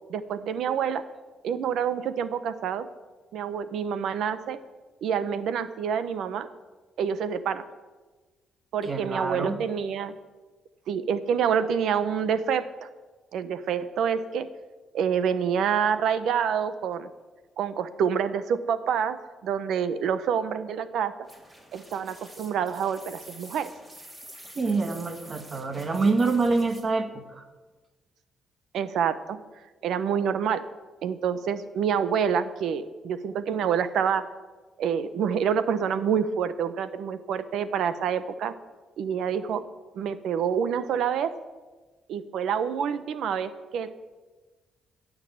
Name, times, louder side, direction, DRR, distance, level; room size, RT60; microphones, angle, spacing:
voice 1, 0.1-1.0 1.4-2.9 3.3-4.6 5.0-6.5 7.0-7.6 8.7-10.1 10.9-12.9 13.3-14.5 14.9-17.1 17.6-21.1 21.7-23.7 28.7-29.4 29.8-30.6 31.0-34.3 34.8-38.5 39.0-39.6 39.9-41.3 42.1-43.9, right 7 dB, 75° right, 13 dB, 0.8 m, -27 dB
voice 2, 8.8-9.6 24.6-27.4, right 3 dB, 40° right, 7 dB, 1.8 m, -26 dB
sound 1, 21.2-26.8, right 1 dB, 15° right, 3.7 m, -48 dB
16.5 x 6.5 x 8.5 m, 1.3 s
cardioid pair, 90°, 0 cm